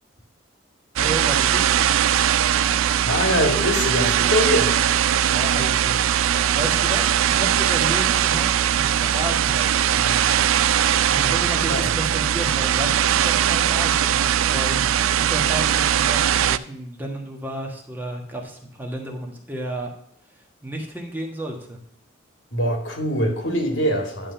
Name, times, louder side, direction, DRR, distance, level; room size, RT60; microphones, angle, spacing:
voice 1, 0.9-1.9 5.3-8.5 8.7-10.4 11.1-19.9 20.3-21.8, right 1 dB, 10° right, 1 dB, 1.4 m, -32 dB
sound 1, 1.0-16.6, right 10 dB, 90° right, 0.4 m, -20 dB
voice 2, 2.6-4.8 11.7-11.8 22.5-24.3, equal, 65° left, 3 dB, 1.9 m, -23 dB
11.0 x 3.7 x 5.7 m, 0.71 s
head